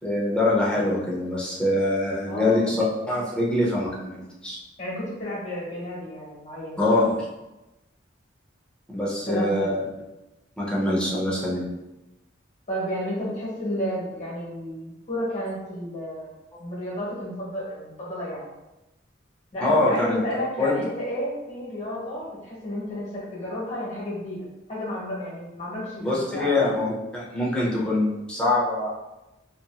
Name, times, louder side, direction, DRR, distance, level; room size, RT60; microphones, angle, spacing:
voice 1, 0.0-2.8 3.1-4.6 6.8-7.1 8.9-9.8 10.6-11.7 16.5-16.6 19.6-20.2 20.6-20.7 26.0-28.9, left 2 dB, 5° left, -6 dB, 0.6 m, -24 dB
voice 2, 2.2-2.7 4.8-6.8 9.3-9.7 12.7-16.3 16.6-18.5 19.5-24.4 24.7-26.6, equal, 40° left, -6 dB, 1.1 m, -32 dB
2.8 x 2.6 x 2.2 m, 1.0 s
head